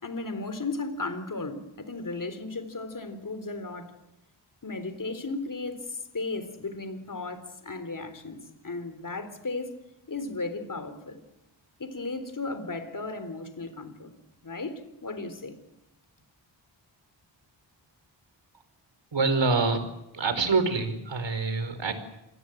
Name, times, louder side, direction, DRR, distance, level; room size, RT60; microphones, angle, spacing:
voice 1, 0.0-3.9 4.6-9.8 10.1-11.2 11.8-14.1 14.4-15.6, left 3 dB, 40° left, 3.8 m, -35 dB
voice 2, 19.1-19.8 20.1-21.9, right 4 dB, 65° right, 4.9 m, -25 dB
27.0 x 20.0 x 7.9 m
wide cardioid pair, 75°, 47 cm